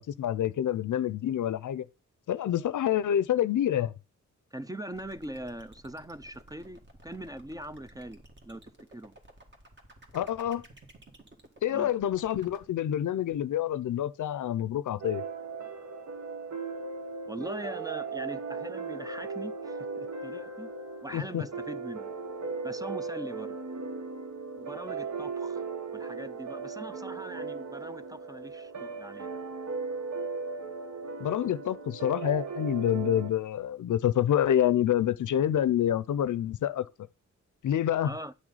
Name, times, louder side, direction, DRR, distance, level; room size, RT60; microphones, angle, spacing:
voice 1, 0.0-1.9 2.3-3.9 10.1-10.6 11.6-15.2 21.1-21.4 31.2-36.9 37.6-38.1, left 10 dB, 80° left, 0.5 m, -27 dB
voice 2, 4.5-8.6 8.9-9.2 11.7-11.9 17.3-20.7 21.0-22.1 22.6-23.6 24.5-25.7 25.9-29.5 38.0-38.3, right 1 dB, 10° right, 0.4 m, -41 dB
sound 1, 4.9-12.6, right 1 dB, 35° right, 1.8 m, -54 dB
sound 2, 15.0-33.3, right 4 dB, 65° right, 1.0 m, -37 dB
9.4 x 6.1 x 4.0 m
wide cardioid pair, 105°, 30 cm